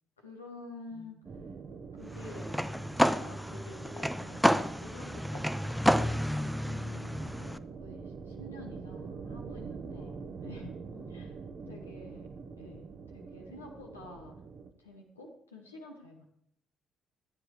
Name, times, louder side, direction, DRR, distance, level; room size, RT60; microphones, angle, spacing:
voice 1, 0.2-1.2 1.9-2.5 3.0-6.6 7.4-10.1 10.4-10.8 11.1-11.4 11.7-12.3 12.6-14.4 14.8-16.2, left 2 dB, 85° left, 0 dB, 1.2 m, -49 dB
voice 2, 0.9-1.5 6.6-7.7 9.8-10.3 10.9-11.3 11.6-12.3, left 6 dB, 55° left, 6 dB, 1.1 m, -54 dB
sound 1, 1.2-14.7, right 5 dB, 45° right, 1.0 m, -45 dB
sound 2, 2.1-7.6, equal, ahead, 0.5 m, -30 dB
14.0 x 9.4 x 3.1 m, 0.73 s
figure-of-eight pair, 45°, 0 cm